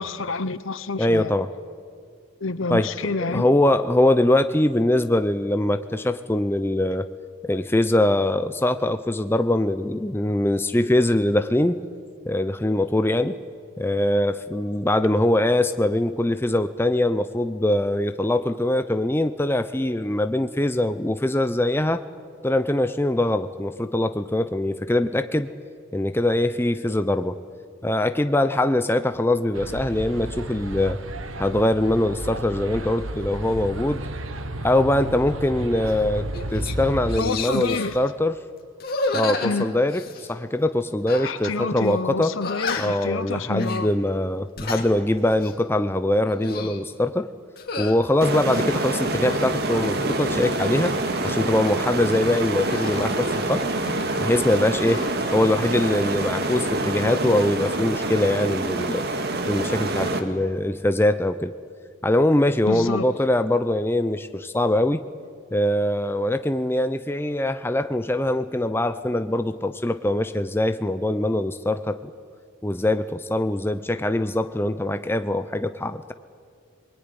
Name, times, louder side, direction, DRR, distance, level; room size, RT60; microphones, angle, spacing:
voice 1, 0.0-1.3 2.4-3.5 37.2-38.0 39.4-39.6 41.2-43.9 62.6-63.1, left 3 dB, 70° left, 13 dB, 1.0 m, -28 dB
voice 2, 1.0-1.5 2.7-2.9 3.3-7.1 7.4-11.8 12.3-13.4 13.8-22.0 22.4-25.5 25.9-27.4 27.8-31.0 31.4-34.0 34.6-38.4 39.1-42.3 42.8-47.3 47.8-51.0 51.2-53.6 54.2-55.1 55.3-59.1 59.5-61.5 62.0-65.0 65.5-72.1 72.6-76.1, left 1 dB, 10° left, 10 dB, 0.6 m, -22 dB
sound 1, 29.5-37.2, right 1 dB, 70° right, 1.4 m, -32 dB
sound 2, 35.9-36.0 36.3-36.7 37.1-38.0 38.8-40.3 41.1-41.6 41.8-41.9 42.4-43.1 43.5-43.8 44.4-44.9 45.3-45.6 46.2-46.8 47.6-48.0 48.5-49.4 49.9-50.9 52.7-54.1 54.4-55.1, left 3 dB, 45° left, 2.4 m, -32 dB
sound 3, 48.2-60.2, right 2 dB, 50° right, 1.9 m, -26 dB
26.5 x 21.5 x 9.7 m, 2.2 s
head